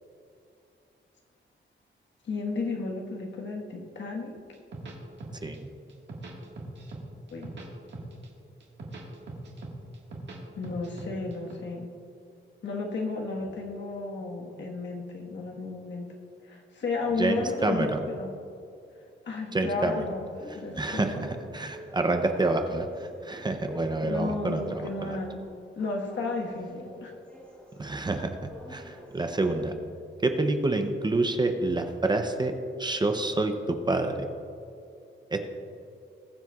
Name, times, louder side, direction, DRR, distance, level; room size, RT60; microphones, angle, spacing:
voice 1, 2.2-4.4 7.3-7.5 10.5-11.9 12.6-16.1 16.4-18.3 19.2-21.3 24.0-25.4 25.7-27.1, left 3 dB, 65° left, 0 dB, 1.4 m, -33 dB
sound 1, 4.5-5.6 5.9-7.0 7.3-8.3 8.6-10.4 10.6-11.5, right 2 dB, 60° right, 1.6 m, -41 dB
voice 2, 17.2-18.0 19.5-20.0 20.8-25.2 27.8-28.4 28.7-29.7 30.2-32.5 32.8-34.3 35.3-35.5, right 2 dB, 20° right, 5 dB, 0.5 m, -28 dB
sound 2, 19.9-29.8, left 1 dB, 5° left, 1.2 m, -48 dB
20.5 x 7.6 x 2.3 m, 2.6 s
wide cardioid pair, 175°, 20 cm